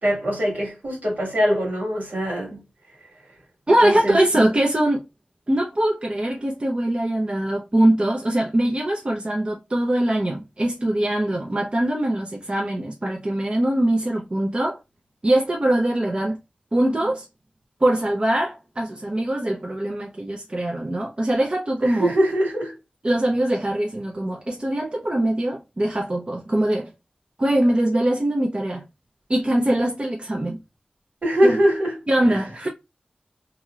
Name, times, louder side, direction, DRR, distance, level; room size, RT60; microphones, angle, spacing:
voice 1, 0.0-2.6 3.8-4.2 21.8-22.7 31.2-32.4, equal, 75° right, 1.9 m, -22 dB
voice 2, 3.7-5.0 5.5-14.8 15.2-16.4 16.7-17.3 17.8-22.1 23.0-26.9 27.4-28.8 29.3-30.6 31.4-31.6 32.1-32.7, right 1 dB, 40° right, 0.6 m, -22 dB
3.0 x 2.8 x 2.3 m
wide cardioid pair, 60°, 3 cm